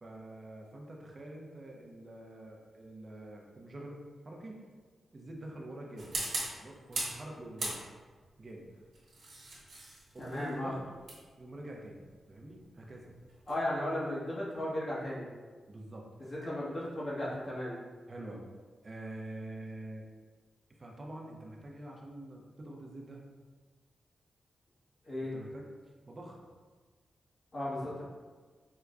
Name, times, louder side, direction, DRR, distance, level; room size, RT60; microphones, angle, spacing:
voice 1, 0.0-4.0 4.2-4.6 5.1-6.1 6.6-7.8 8.4-8.7 10.1-10.8 11.4-13.1 15.7-16.1 18.1-18.4 18.8-20.0 20.8-23.2 25.3-25.7 26.1-26.4, right 1 dB, 40° right, -1 dB, 0.5 m, -46 dB
sound 1, 6.0-7.2 7.6-8.2 8.9-13.7, right 2 dB, 80° right, 1.0 m, -40 dB
voice 2, 10.2-10.7 13.5-15.3 16.3-17.8 25.0-25.3 27.5-28.0, left 1 dB, 50° left, -7 dB, 1.1 m, -35 dB
4.5 x 2.1 x 2.4 m, 1.4 s
cardioid pair, 75°, 0 cm